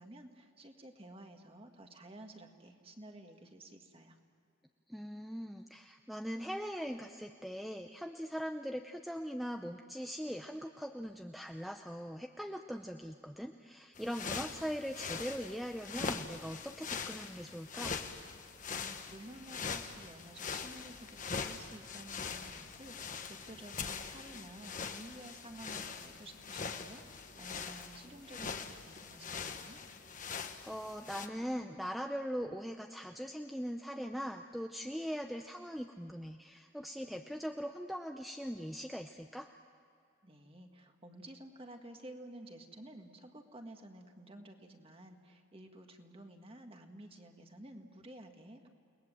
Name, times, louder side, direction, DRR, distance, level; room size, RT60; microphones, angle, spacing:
voice 1, 0.0-4.2 18.7-29.8 40.2-48.7, right 1 dB, 25° right, 4 dB, 1.8 m, -52 dB
voice 2, 4.9-18.0 30.6-39.5, equal, ahead, 5 dB, 0.6 m, -41 dB
sound 1, 13.9-31.3, left 5 dB, 40° left, 1.2 m, -42 dB
30.0 x 20.0 x 7.6 m, 2.5 s
head